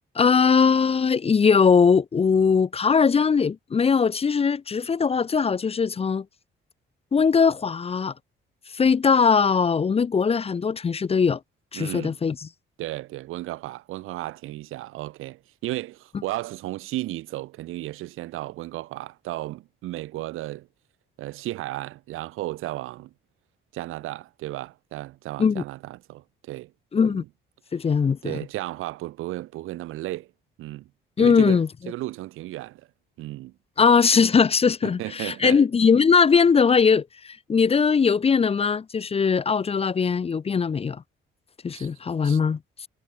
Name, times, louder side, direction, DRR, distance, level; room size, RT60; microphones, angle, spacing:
voice 1, 0.2-6.2 7.1-8.1 8.7-11.4 11.7-12.4 25.4-25.6 26.9-27.2 27.7-28.4 31.2-31.7 33.8-41.0 41.6-42.6, left 5 dB, 30° left, 0.5 m, -20 dB
voice 2, 11.7-12.2 12.8-20.7 21.2-23.1 23.7-26.7 27.0-27.2 28.2-30.3 30.6-30.9 31.2-31.6 31.9-32.8 33.2-33.5 34.8-35.6 41.7-41.9 42.2-42.4, right 16 dB, 90° right, 2.1 m, -34 dB
cardioid pair, 75°, 21 cm